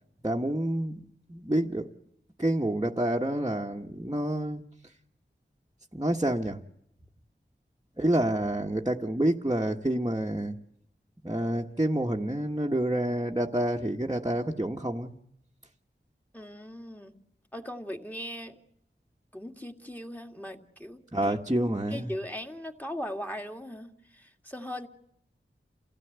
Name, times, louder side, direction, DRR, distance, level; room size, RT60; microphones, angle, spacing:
voice 1, 0.2-1.9 2.4-4.6 5.9-6.6 8.0-10.6 11.2-15.2 21.1-22.1, right 1 dB, 20° right, 1.4 m, -28 dB
voice 2, 16.3-17.1 17.5-18.6 19.3-21.0 21.3-21.4 21.9-24.9, equal, 10° left, 2.2 m, -39 dB
28.5 x 16.5 x 8.2 m
wide cardioid pair, 50°, 20 cm